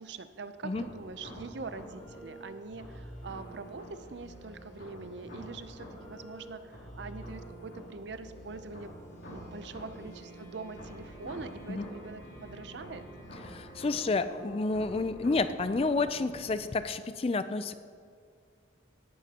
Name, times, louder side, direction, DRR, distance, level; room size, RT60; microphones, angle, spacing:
voice 1, 0.0-13.1, right 4 dB, 70° right, 11 dB, 0.6 m, -44 dB
sound 1, 0.7-16.7, equal, 85° left, 2.8 m, -47 dB
voice 2, 13.5-17.7, left 3 dB, 30° left, 12 dB, 0.4 m, -30 dB
17.5 x 11.0 x 2.9 m, 2.2 s
head